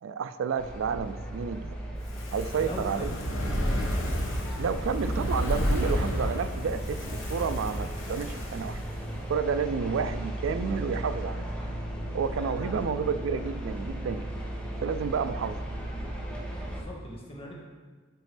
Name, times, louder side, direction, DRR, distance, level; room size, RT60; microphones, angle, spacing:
voice 1, 0.0-1.8 2.3-3.1 4.6-8.8 9.3-11.5 12.1-14.3 14.8-15.6, right 6 dB, 75° right, 11 dB, 0.4 m, -30 dB
sound 1, 0.6-16.8, right 1 dB, 5° left, 1.0 m, -36 dB
Fire, 2.0-9.3 9.6-9.7, equal, 75° left, 1.2 m, -31 dB
voice 2, 2.5-3.2 16.6-17.5, left 1 dB, 30° left, -3 dB, 1.4 m, -41 dB
9.1 x 5.2 x 3.3 m, 1.4 s
head